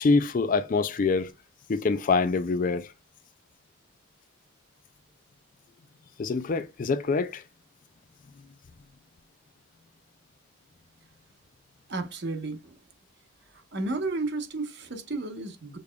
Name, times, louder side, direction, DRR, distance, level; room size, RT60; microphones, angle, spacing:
voice 1, 0.0-1.3 1.7-2.9 6.2-7.4, left 4 dB, 40° left, 0.4 m, -25 dB
voice 2, 11.9-12.7 13.7-15.8, right 3 dB, 55° right, 1.1 m, -32 dB
6.5 x 3.5 x 2.3 m
head